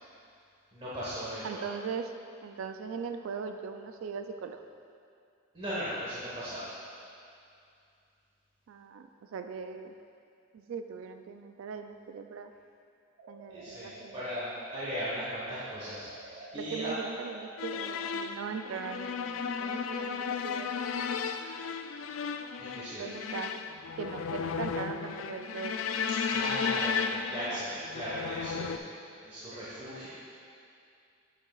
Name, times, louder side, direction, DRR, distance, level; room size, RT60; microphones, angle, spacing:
voice 1, 0.7-1.7 5.5-6.7 13.5-16.9 22.6-23.1 26.3-28.8 29.2-30.1, equal, 30° right, -10 dB, 1.2 m, -37 dB
voice 2, 1.4-2.1 2.4-4.6 8.7-10.0 10.5-12.5 13.3-14.2 16.5-20.7 23.0-23.6 24.0-25.9 27.1-27.6 28.6-28.7, right 6 dB, 75° right, 7 dB, 0.3 m, -40 dB
sound 1, 13.2-18.1, right 2 dB, 60° right, 0.8 m, -49 dB
sound 2, 17.6-28.8, left 6 dB, 75° left, 0.3 m, -34 dB
8.4 x 7.2 x 2.4 m, 2.5 s
head